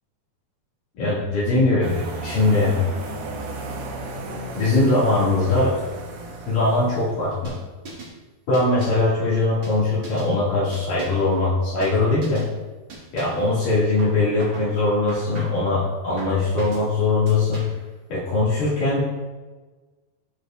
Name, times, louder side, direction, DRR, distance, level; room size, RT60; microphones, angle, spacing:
voice 1, 1.0-2.8 4.6-5.8 6.5-7.6 8.5-12.5 13.1-17.7 18.1-19.0, left 2 dB, 65° left, -10 dB, 3.8 m, -21 dB
sound 1, 1.8-7.3, right 2 dB, 80° right, 3.2 m, -34 dB
sound 2, 7.4-8.2 8.5-9.1 9.6-10.3 10.7-11.3 11.8-12.0 12.2-12.5 12.9-13.5 14.0-14.7 15.1-15.7 16.2-16.9 17.3-17.9, right 2 dB, 40° right, 1.9 m, -40 dB
13.0 x 6.5 x 2.5 m, 1.3 s
omnidirectional pair, 4.4 m